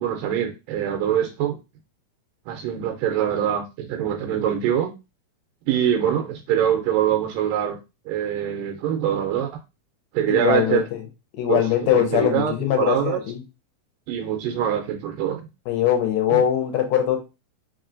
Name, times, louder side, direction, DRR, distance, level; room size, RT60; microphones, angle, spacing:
voice 1, 0.0-1.6 2.5-4.9 5.7-7.8 8.1-9.5 10.1-10.9 11.5-11.6 11.9-13.2 14.1-15.4 16.3-16.4, right 10 dB, 85° right, 4 dB, 2.2 m, -24 dB
voice 2, 10.3-10.8 11.4-13.4 15.7-17.2, left 10 dB, 70° left, 3 dB, 1.9 m, -21 dB
5.0 x 3.0 x 2.4 m, 0.27 s
omnidirectional pair, 3.8 m